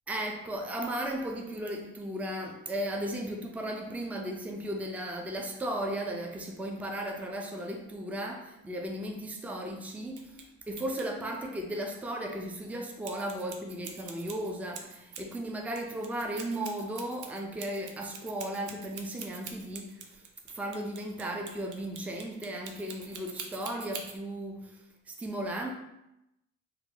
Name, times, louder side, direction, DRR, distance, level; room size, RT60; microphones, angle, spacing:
voice 1, 0.1-24.8 25.1-25.7, right 1 dB, 5° right, 2 dB, 0.4 m, -36 dB
sound 1, 10.1-10.4 10.8-11.1 13.0-15.4 15.7-24.2, right 6 dB, 75° right, 0.5 m, -44 dB
2.9 x 2.2 x 3.8 m, 0.88 s
cardioid pair, 90°, 30 cm